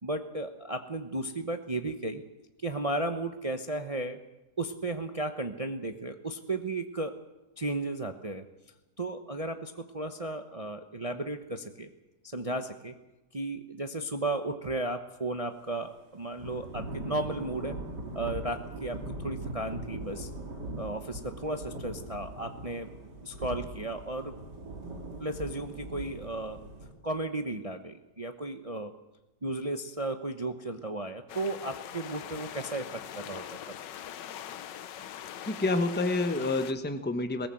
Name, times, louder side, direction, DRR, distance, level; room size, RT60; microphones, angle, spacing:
voice 1, 0.0-2.2 2.6-4.2 4.6-7.2 7.6-8.5 9.0-11.9 12.2-13.0 13.3-17.8 18.1-20.3 20.8-22.9 23.2-24.4 25.2-26.6 27.0-28.9 29.4-33.6, right 2 dB, 25° right, 7 dB, 0.8 m, -34 dB
Thunder / Rain, 16.4-26.9, right 2 dB, 70° right, 3.2 m, -40 dB
sound 1, 31.3-36.7, left 10 dB, 85° left, 1.6 m, -42 dB
voice 2, 35.4-37.5, left 2 dB, 5° left, 8 dB, 1.1 m, -28 dB
20.5 x 18.0 x 7.7 m, 1.0 s
omnidirectional pair, 1.9 m